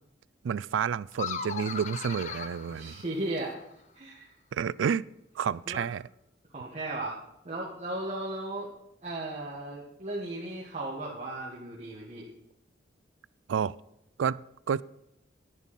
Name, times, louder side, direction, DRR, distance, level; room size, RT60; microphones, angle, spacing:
voice 1, 0.4-3.0 4.5-5.0 5.4-6.0 13.5-13.7 14.2-14.8, right 7 dB, 85° right, 20 dB, 0.3 m, -30 dB
sound 1, 1.1-3.6, left 6 dB, 40° left, 0.7 m, -38 dB
voice 2, 2.7-3.6 3.9-4.3 5.7-5.8 6.5-7.2 7.4-8.7 9.0-12.2, right 2 dB, 40° right, -4 dB, 1.6 m, -36 dB
10.5 x 9.8 x 4.2 m, 0.82 s
head